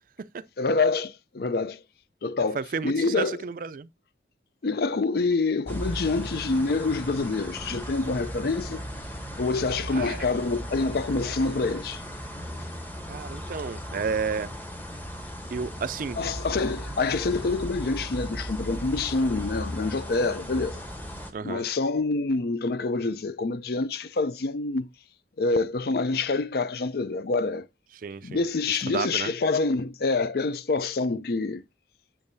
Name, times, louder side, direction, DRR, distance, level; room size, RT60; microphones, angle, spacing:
voice 1, 0.6-1.8 2.2-3.4 4.6-8.8 9.4-12.0 16.2-20.8 21.4-24.9 25.4-27.7 28.2-31.6, left 3 dB, 55° left, 0.5 m, -26 dB
voice 2, 2.5-3.9 9.9-10.3 13.1-14.5 15.5-16.2 21.3-21.7 28.0-28.4 28.7-29.3, right 5 dB, 45° right, 0.4 m, -32 dB
sound 1, 5.7-21.3, equal, 10° left, 0.9 m, -36 dB
7.2 x 7.1 x 2.6 m
head